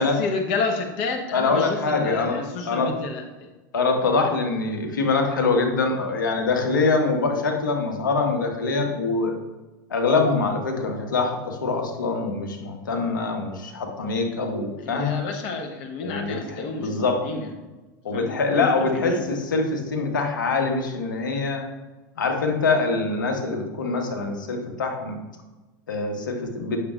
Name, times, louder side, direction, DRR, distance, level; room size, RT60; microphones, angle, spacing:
voice 1, 0.0-3.2 14.8-17.5 18.1-18.7 18.9-19.2, left 4 dB, 55° left, 3 dB, 1.1 m, -30 dB
voice 2, 1.3-2.4 2.7-2.9 3.7-9.3 9.9-15.2 16.0-17.2 18.0-21.6 22.2-25.2 25.9-26.8, left 3 dB, 90° left, 3 dB, 1.2 m, -24 dB
8.5 x 6.6 x 2.5 m, 1.1 s
hypercardioid pair, 95°, 10 cm